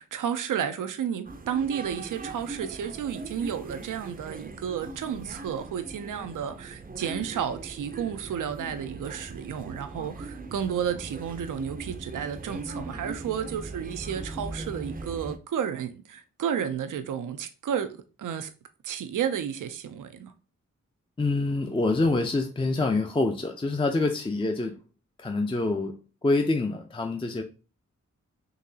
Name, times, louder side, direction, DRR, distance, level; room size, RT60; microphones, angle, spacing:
voice 1, 0.0-18.5 18.8-20.3, right 8 dB, 80° right, 0.5 m, -32 dB
sound 1, 1.2-15.4, right 2 dB, 30° right, 0.5 m, -40 dB
voice 2, 21.2-24.7 25.2-26.0 26.2-27.4, left 2 dB, 15° left, 0.5 m, -26 dB
3.9 x 2.9 x 2.7 m
cardioid pair, 45°, 31 cm